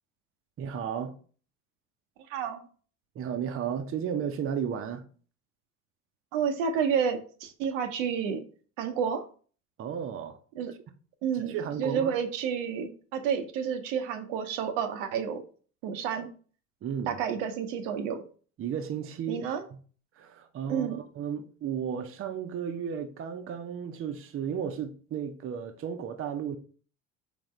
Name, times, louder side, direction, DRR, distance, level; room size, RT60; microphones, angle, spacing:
voice 1, 0.6-1.1 3.1-5.1 9.8-10.4 11.3-12.1 16.8-17.2 18.6-19.8 20.2-26.6, right 8 dB, 35° right, 0.6 m, -34 dB
voice 2, 2.3-2.6 6.3-8.4 8.8-9.3 10.5-10.7 11.2-15.4 15.8-16.3 17.1-18.2 19.3-19.6 20.7-21.0, right 7 dB, 75° right, 0.6 m, -30 dB
3.6 x 3.4 x 3.1 m
hypercardioid pair, 70°, 37 cm